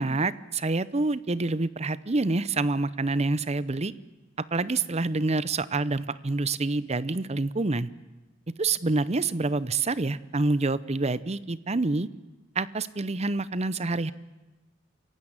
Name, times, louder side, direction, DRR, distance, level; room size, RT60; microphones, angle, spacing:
voice 1, 0.0-3.9 4.5-7.9 8.6-12.1 12.6-14.1, right 3 dB, 35° right, 17 dB, 0.7 m, -27 dB
28.0 x 16.0 x 8.8 m, 1.1 s
head